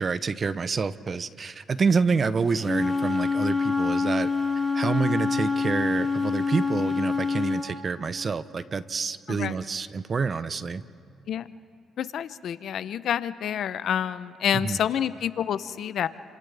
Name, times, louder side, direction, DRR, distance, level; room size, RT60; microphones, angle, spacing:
voice 1, 0.0-4.3 4.7-10.8 14.5-14.8, right 5 dB, 40° right, 15 dB, 0.7 m, -27 dB
Wind instrument woodwind instrument, 2.6-7.6, left 4 dB, 25° left, 2.5 m, -26 dB
voice 2, 12.0-16.1, left 9 dB, 70° left, 14 dB, 0.6 m, -28 dB
30.0 x 26.5 x 3.4 m, 2.4 s
cardioid pair, 90°, 0 cm